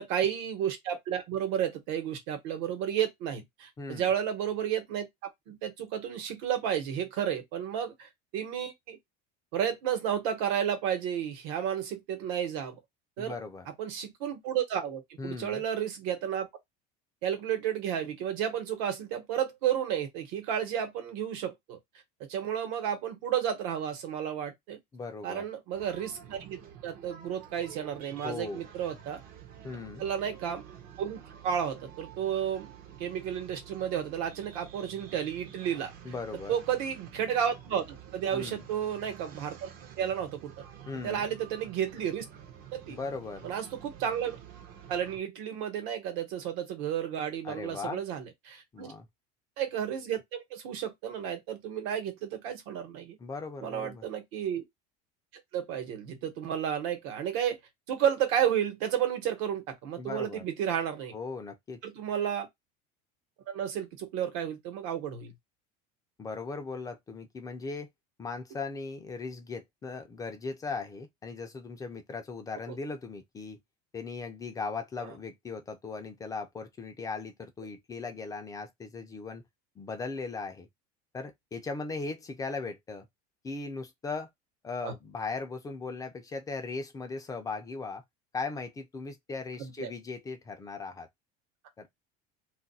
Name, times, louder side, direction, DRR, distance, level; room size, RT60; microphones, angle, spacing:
voice 1, 0.0-9.0 9.5-12.8 13.2-13.3 13.8-16.5 17.2-21.8 22.3-24.8 25.2-29.2 30.0-30.7 31.0-32.7 33.0-36.1 36.5-39.7 40.0-40.6 41.0-42.2 42.7-43.0 43.4-44.4 44.9-48.9 49.6-53.2 53.6-54.6 55.5-57.6 57.9-61.1 61.8-62.5 63.5-65.3 72.7-72.8 75.0-75.1 84.8-84.9 89.6-89.9, right 9 dB, 70° right, 1.1 m, -32 dB
voice 2, 3.8-4.1 13.2-13.7 15.2-15.6 24.9-25.4 28.2-28.6 29.6-30.0 36.0-36.5 38.3-38.6 40.9-41.3 42.9-43.5 47.4-48.0 48.7-49.1 53.2-54.0 60.0-60.4 61.1-61.8 66.2-67.9 68.2-73.6 73.9-79.4 79.8-80.7 81.1-83.1 83.4-84.3 84.6-88.0 88.3-91.1 91.8-91.9, left 4 dB, 15° left, 0.4 m, -38 dB
sound 1, 25.7-45.2, right 8 dB, 45° right, 0.7 m, -49 dB
2.4 x 2.2 x 4.0 m
cardioid pair, 150°, 21 cm